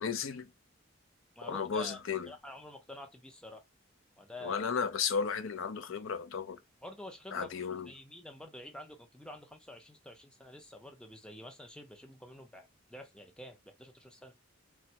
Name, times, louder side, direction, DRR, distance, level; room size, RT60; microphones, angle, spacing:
voice 1, 0.0-0.5 1.4-2.3 4.4-6.6 7.3-7.9, left 6 dB, 75° left, 0.5 m, -34 dB
voice 2, 1.4-2.0 2.3-3.6 4.2-4.6 6.8-7.5 7.9-14.3, left 1 dB, 5° left, 0.5 m, -48 dB
3.3 x 2.1 x 2.8 m
head